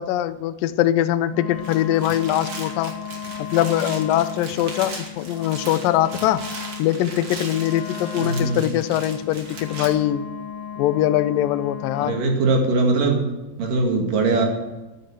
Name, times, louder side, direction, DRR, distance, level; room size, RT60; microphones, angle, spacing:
voice 1, 0.0-2.9 3.4-6.4 6.8-10.3 10.8-12.2, left 12 dB, 75° left, 11 dB, 2.2 m, -22 dB
Wind instrument woodwind instrument, 1.3-12.3, left 8 dB, 60° left, 2.0 m, -35 dB
sound 1, 1.5-9.9, right 3 dB, 40° right, 3.0 m, -38 dB
voice 2, 8.2-8.6 12.0-13.2 13.6-14.5, right 3 dB, 60° right, 2 dB, 3.7 m, -21 dB
14.0 x 9.8 x 7.9 m, 1.1 s
omnidirectional pair, 4.6 m